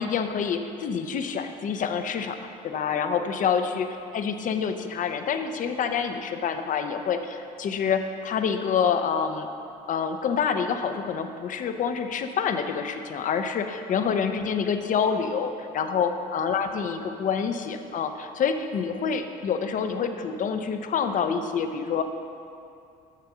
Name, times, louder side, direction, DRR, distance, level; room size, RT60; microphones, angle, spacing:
voice 1, 0.0-2.4 2.6-3.9 4.1-9.5 9.9-22.0, left 6 dB, 50° left, 7 dB, 0.7 m, -27 dB
6.8 x 6.5 x 6.1 m, 2.5 s
supercardioid pair, 85°, 18 cm